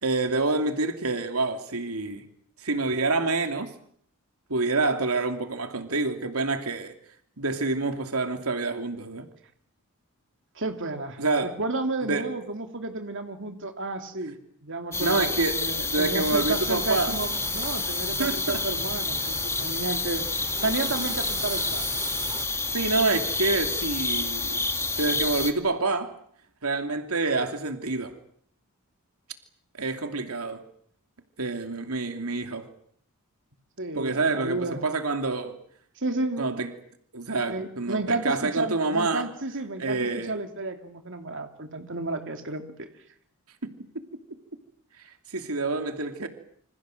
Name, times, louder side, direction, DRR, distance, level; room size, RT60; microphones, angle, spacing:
voice 1, 0.0-2.3 2.6-3.7 4.5-6.9 7.4-9.3 11.2-11.5 12.0-12.3 15.0-15.6 15.9-17.2 18.2-18.7 22.7-24.6 25.0-26.1 26.6-28.2 29.8-30.6 31.4-32.7 33.9-35.6 36.4-36.7 37.1-39.3 39.8-40.3 43.6-44.1 45.3-46.3, right 3 dB, 85° right, 2.8 m, -27 dB
voice 2, 10.5-14.4 14.6-20.3 20.6-21.8 33.8-34.9 36.0-36.5 37.5-42.9, right 2 dB, 60° right, 3.0 m, -32 dB
sound 1, 14.9-25.5, left 3 dB, 10° left, 2.3 m, -29 dB
sound 2, 16.2-22.5, right 4 dB, 20° right, 4.0 m, -39 dB
28.0 x 26.5 x 7.8 m
head